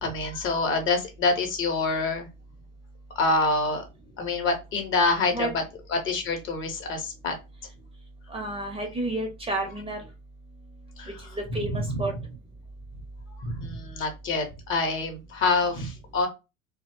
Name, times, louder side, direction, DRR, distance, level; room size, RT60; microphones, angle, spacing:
voice 1, 0.0-2.3 3.2-3.8 4.2-5.6 5.9-7.4 11.0-12.1 13.4-16.3, left 3 dB, 30° left, 5 dB, 0.6 m, -26 dB
voice 2, 8.3-10.0 11.3-12.1, right 2 dB, 15° right, 2 dB, 0.6 m, -30 dB
2.7 x 2.0 x 2.9 m, 0.26 s
figure-of-eight pair, 70°, 40 cm